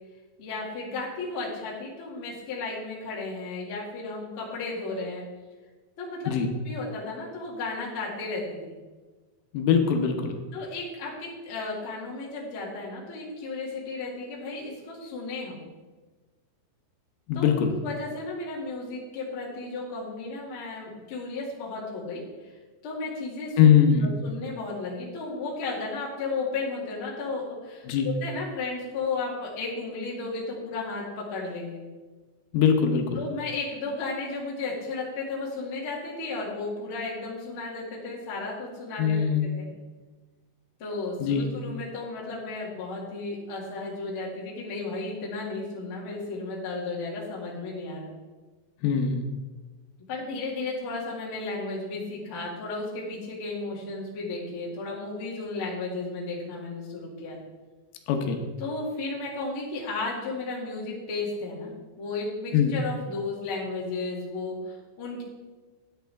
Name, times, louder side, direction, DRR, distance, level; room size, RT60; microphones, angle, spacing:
voice 1, 0.4-5.2 6.0-6.3 6.6-8.7 10.5-15.6 17.3-17.5 17.8-22.5 22.8-23.6 24.0-31.8 33.1-39.2 39.6-39.7 40.8-48.1 50.1-57.4 58.6-65.2, left 3 dB, 40° left, -4 dB, 2.0 m, -34 dB
voice 2, 9.5-10.4 17.3-17.7 23.6-24.1 27.9-28.1 32.5-33.2 39.0-39.6 41.2-41.5 48.8-49.2 58.1-58.4 62.5-62.8, left 7 dB, 85° left, 4 dB, 3.6 m, -22 dB
13.5 x 9.0 x 3.5 m, 1.3 s
omnidirectional pair, 5.7 m